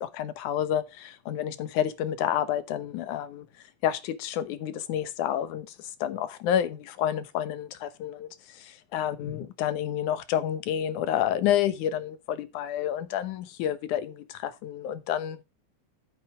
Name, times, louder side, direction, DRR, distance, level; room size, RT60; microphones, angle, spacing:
voice 1, 0.0-3.5 3.8-15.4, left 10 dB, 80° left, 2.5 m, -29 dB
9.2 x 7.7 x 4.9 m
omnidirectional pair, 3.5 m